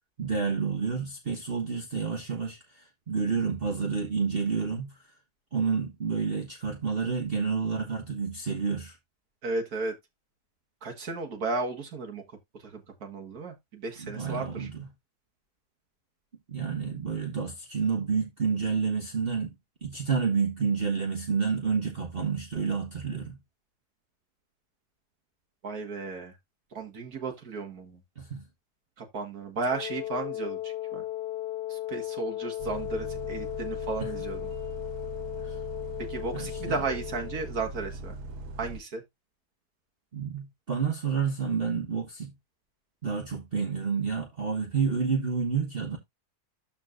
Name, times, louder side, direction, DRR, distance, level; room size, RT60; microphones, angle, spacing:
voice 1, 0.2-5.0 5.5-9.0 14.0-14.9 16.5-19.5 19.8-23.4 28.2-28.4 34.0-34.1 35.4-35.6 36.3-36.8 40.1-42.3 43.0-46.0, right 5 dB, 40° right, 1.4 m, -29 dB
voice 2, 9.4-9.9 10.8-12.2 12.6-14.7 25.6-26.4 26.7-28.0 29.0-31.0 31.7-34.5 36.1-38.1 38.6-39.0, right 3 dB, 70° right, 2.1 m, -34 dB
Wind instrument woodwind instrument, 29.7-37.6, left 14 dB, 85° left, 1.4 m, -36 dB
Bus, 32.6-38.8, right 2 dB, 90° right, 1.7 m, -40 dB
13.0 x 4.5 x 2.5 m
omnidirectional pair, 1.7 m